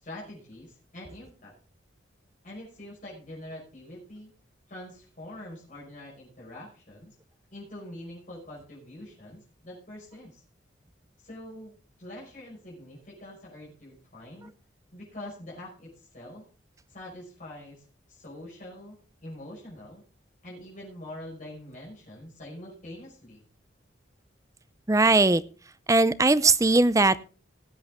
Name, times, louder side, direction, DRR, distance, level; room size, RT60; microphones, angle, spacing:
voice 1, 0.0-1.5 2.4-4.3 4.7-7.1 7.5-10.4 11.2-11.7 12.0-14.5 14.9-16.5 16.9-20.0 20.4-23.4, left 1 dB, 45° left, -5 dB, 5.7 m, -44 dB
voice 2, 24.9-25.4 25.9-27.2, right 3 dB, 15° right, 15 dB, 0.5 m, -20 dB
18.0 x 8.4 x 3.7 m, 0.35 s
head